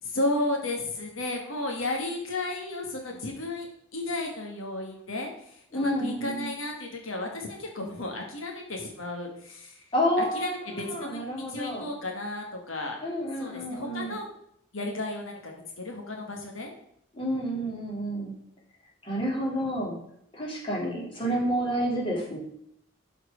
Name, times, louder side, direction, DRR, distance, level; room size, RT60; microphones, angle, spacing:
voice 1, 0.0-9.9 10.2-13.0 13.4-14.3 14.7-16.7, left 2 dB, 80° left, 1 dB, 1.6 m, -33 dB
voice 2, 5.7-6.5 9.9-11.9 13.0-14.2 17.1-18.3 19.0-20.0 20.3-22.4, equal, 25° left, -3 dB, 3.0 m, -29 dB
12.0 x 4.6 x 5.1 m, 0.72 s
head